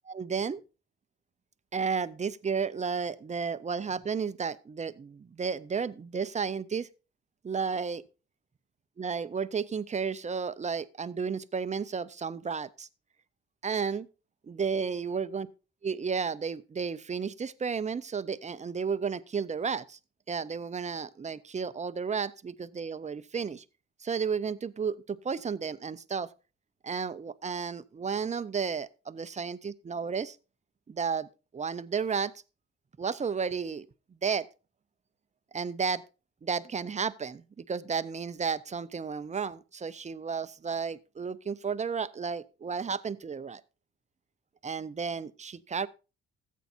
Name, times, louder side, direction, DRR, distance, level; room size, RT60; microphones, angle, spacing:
voice 1, 0.1-0.6 1.7-6.9 7.4-8.0 9.0-12.9 13.6-14.1 14.5-15.5 15.8-20.0 20.3-23.6 24.0-26.3 26.8-30.4 30.9-31.3 31.5-32.3 33.0-33.8 34.2-34.5 35.5-36.0 36.4-43.6 44.6-45.9, right 6 dB, 25° right, 0.5 m, -32 dB
14.5 x 8.3 x 2.5 m
cardioid pair, 90°, 30 cm